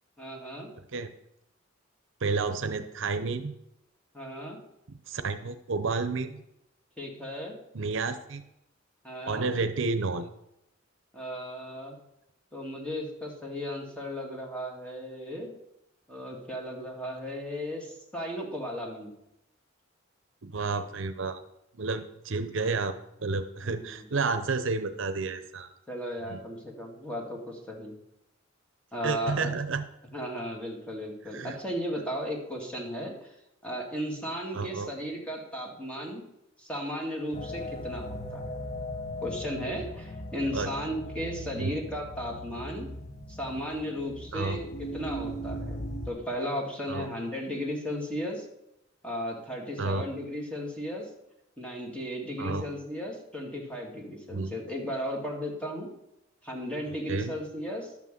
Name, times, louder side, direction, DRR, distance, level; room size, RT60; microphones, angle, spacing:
voice 1, 0.2-0.7 4.1-4.6 7.0-7.6 9.0-9.5 11.1-12.0 12.5-15.5 16.1-19.1 23.6-24.0 25.9-27.9 28.9-29.5 30.1-33.3 33.6-36.2 36.6-38.6 39.2-42.9 43.3-48.5 49.0-51.1 51.6-55.9 56.4-57.9, equal, 5° left, 0 dB, 2.3 m, -35 dB
voice 2, 2.2-3.5 5.1-6.4 7.7-8.4 9.2-10.3 20.4-21.4 21.8-22.9 23.2-25.7 26.3-26.4 29.0-29.8 31.3-31.6 34.5-34.9 40.5-40.7 41.5-41.7 44.3-44.6 46.9-47.1 49.8-50.1 52.4-52.6 54.3-54.5 57.1-57.3, right 4 dB, 65° right, 10 dB, 0.7 m, -30 dB
sound 1, 37.3-46.1, equal, 35° left, 1.0 m, -38 dB
11.5 x 6.1 x 7.5 m, 0.83 s
head